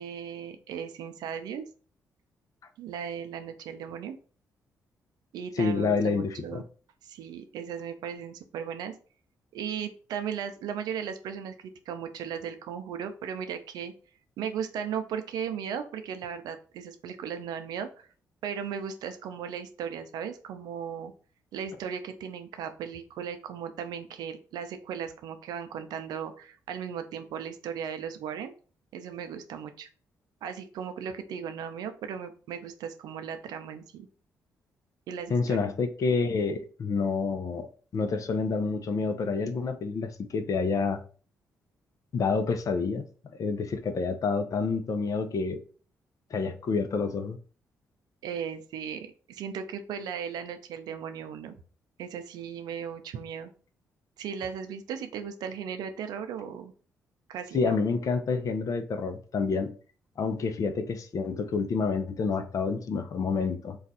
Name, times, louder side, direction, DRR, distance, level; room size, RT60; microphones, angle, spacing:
voice 1, 0.0-1.7 2.8-4.2 5.3-6.6 7.0-8.9 9.5-13.9 14.4-18.1 18.4-21.1 21.5-28.5 28.9-29.9 30.4-34.1 35.1-35.7 48.2-51.6 52.0-53.5 54.2-56.7 57.3-57.8, right 7 dB, 80° right, 0.5 m, -36 dB
voice 2, 5.6-6.6 35.3-41.0 42.1-43.1 43.4-45.6 46.3-47.4 57.5-59.7 60.2-63.8, left 4 dB, 55° left, 0.5 m, -28 dB
2.4 x 2.3 x 4.0 m
supercardioid pair, 55°, 7 cm